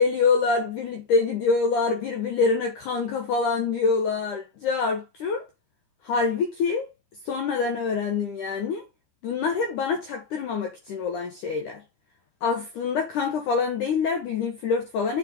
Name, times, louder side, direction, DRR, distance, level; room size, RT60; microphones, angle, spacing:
voice 1, 0.0-5.4 6.0-6.9 7.3-8.8 9.2-11.8 12.4-15.2, left 5 dB, 75° left, 1.9 m, -25 dB
7.5 x 4.8 x 3.8 m
omnidirectional pair, 5.1 m